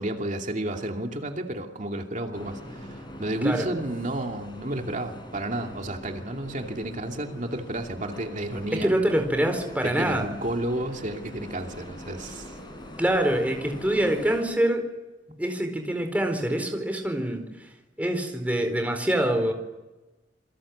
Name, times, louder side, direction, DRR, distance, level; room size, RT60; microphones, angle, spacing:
voice 1, 0.0-8.9 9.8-12.5, right 1 dB, 45° right, 3 dB, 2.6 m, -31 dB
sound 1, 2.3-14.5, equal, 25° left, 6.1 m, -43 dB
voice 2, 8.8-10.3 13.0-14.8 15.4-17.4 18.0-19.5, right 1 dB, 10° right, 5 dB, 4.4 m, -25 dB
28.0 x 23.5 x 8.7 m, 1.1 s
head